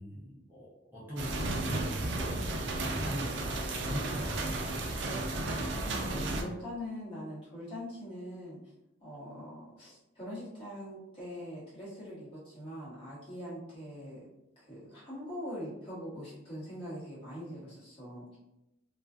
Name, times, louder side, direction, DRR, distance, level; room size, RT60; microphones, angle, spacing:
voice 1, 0.0-4.9, equal, 10° right, -9 dB, 0.6 m, -42 dB
sound 1, 1.2-6.4, right 2 dB, 65° right, 0.4 m, -33 dB
voice 2, 6.0-8.6 9.0-14.2 14.6-18.4, equal, 25° left, -9 dB, 1.2 m, -42 dB
2.5 x 2.4 x 2.3 m, 0.91 s
head